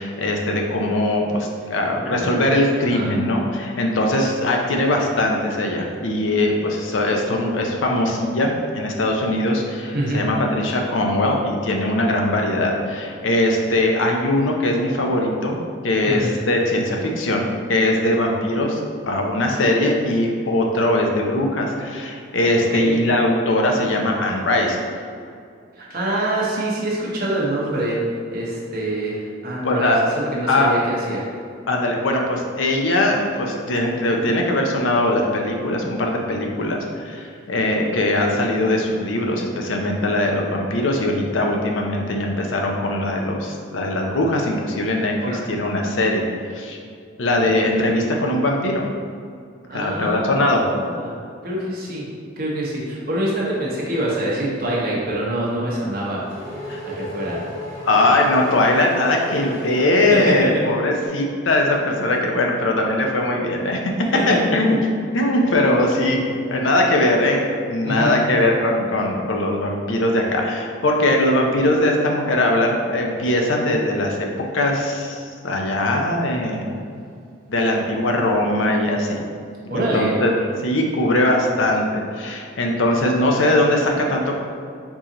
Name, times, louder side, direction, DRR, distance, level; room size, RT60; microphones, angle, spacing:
voice 1, 0.0-15.6 15.8-24.8 29.6-30.0 30.5-30.7 31.7-46.3 46.5-46.8 47.2-48.8 49.7-50.6 56.7-57.0 57.8-63.9 64.3-66.2 66.5-74.3 74.5-76.8 77.5-79.2 79.7-80.3 80.6-84.4, left 1 dB, 85° left, 1 dB, 0.6 m, -21 dB
voice 2, 2.0-2.5 2.8-3.1 9.9-10.2 16.1-16.3 22.7-23.0 25.8-28.0 28.3-31.2 45.2-45.4 49.7-51.2 51.4-52.0 52.4-56.2 56.8-57.4 60.1-60.3 64.1-64.4 67.8-68.5 79.7-80.1, right 1 dB, 50° right, -5 dB, 1.0 m, -25 dB
Race car auto racing / Accelerating revving vroom, 55.7-61.0, left 1 dB, 15° left, 1.1 m, -35 dB
4.7 x 2.8 x 3.8 m, 2.3 s
head